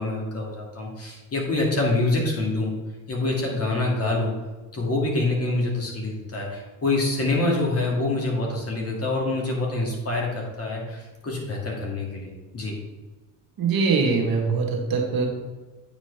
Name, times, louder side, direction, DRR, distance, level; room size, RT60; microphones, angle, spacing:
voice 1, 0.0-2.7 3.1-4.3 4.7-12.8, left 2 dB, 35° left, -2 dB, 2.4 m, -26 dB
voice 2, 13.6-15.3, right 4 dB, 50° right, 1 dB, 1.6 m, -22 dB
8.8 x 5.0 x 3.4 m, 1.2 s
supercardioid pair, 85°, 44 cm